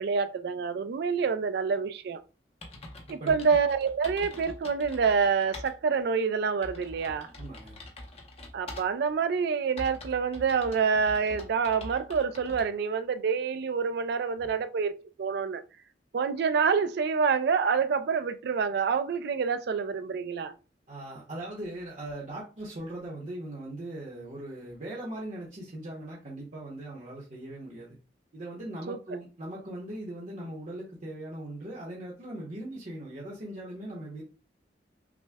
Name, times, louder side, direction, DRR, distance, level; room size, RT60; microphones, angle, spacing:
voice 1, 0.0-2.2 3.1-7.3 8.5-15.6 16.1-20.5 28.9-29.0, right 5 dB, 60° right, 0.3 m, -27 dB
sound 1, 2.2-2.3 2.6-5.7 6.1-6.2 6.6-9.1 9.8-12.7, left 1 dB, 35° left, 0.8 m, -44 dB
voice 2, 7.4-7.8 14.4-14.5 20.9-27.9 28.3-34.2, right 1 dB, 45° right, 0.8 m, -39 dB
5.9 x 2.2 x 2.2 m
head